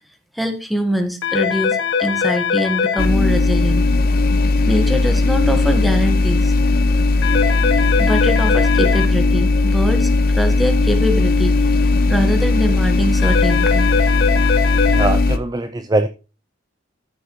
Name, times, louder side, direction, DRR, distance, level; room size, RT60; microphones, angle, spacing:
voice 1, 0.3-3.8 4.6-6.5 8.0-11.6 12.1-13.9, equal, ahead, 5 dB, 1.4 m, -23 dB
sound 1, 1.2-3.1 7.2-9.1 13.2-15.1, left 6 dB, 70° left, 1.3 m, -21 dB
sound 2, 3.0-15.4, left 2 dB, 50° left, 0.7 m, -17 dB
voice 2, 14.9-16.1, right 2 dB, 20° right, 9 dB, 0.4 m, -21 dB
13.0 x 6.9 x 3.1 m, 0.32 s
head